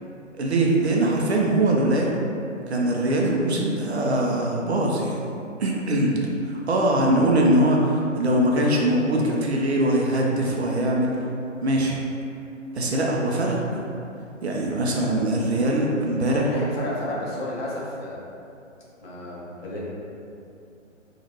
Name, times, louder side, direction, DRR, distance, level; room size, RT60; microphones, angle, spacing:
voice 1, 0.4-2.1 2.7-5.2 5.6-6.1 6.5-11.2 11.6-12.0 12.7-13.8 14.4-16.5, right 1 dB, 60° right, -2 dB, 0.5 m, -22 dB
voice 2, 16.3-18.2 19.0-19.8, left 1 dB, 50° left, -5 dB, 0.8 m, -31 dB
3.0 x 2.4 x 2.8 m, 2.6 s
figure-of-eight pair, 135°, 38 cm